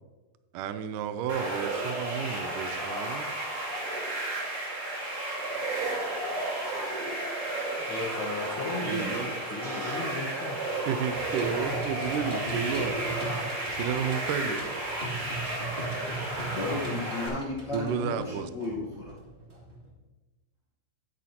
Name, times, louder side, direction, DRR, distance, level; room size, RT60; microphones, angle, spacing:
voice 1, 0.5-3.3 8.8-9.3 10.9-13.0 13.8-14.7 17.7-18.5, right 8 dB, 80° right, 10 dB, 2.0 m, -32 dB
sound 1, 1.3-17.3, right 2 dB, 35° right, 3.7 m, -32 dB
voice 2, 7.8-10.9, left 3 dB, 90° left, -3 dB, 1.1 m, -36 dB
sound 2, 11.1-19.9, right 2 dB, 20° right, 2.6 m, -39 dB
voice 3, 16.5-19.2, left 2 dB, 60° left, -5 dB, 1.1 m, -34 dB
11.0 x 10.5 x 2.9 m, 1.2 s
omnidirectional pair, 4.2 m